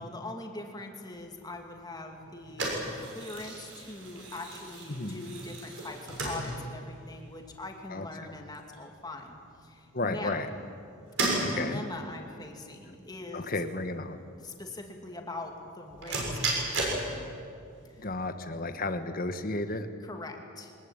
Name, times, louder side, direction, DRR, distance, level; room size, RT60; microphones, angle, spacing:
voice 1, 0.0-10.4 11.4-13.5 14.4-17.2 17.9-18.0 20.0-20.7, left 2 dB, 20° left, 3 dB, 2.5 m, -42 dB
sound 1, 1.1-18.8, right 2 dB, 60° right, 6.6 m, -36 dB
voice 2, 4.9-5.2 7.9-8.0 9.9-10.5 11.4-11.8 13.3-14.2 18.0-19.9, left 2 dB, 40° left, 9 dB, 1.4 m, -33 dB
23.5 x 20.5 x 9.0 m, 2.4 s
head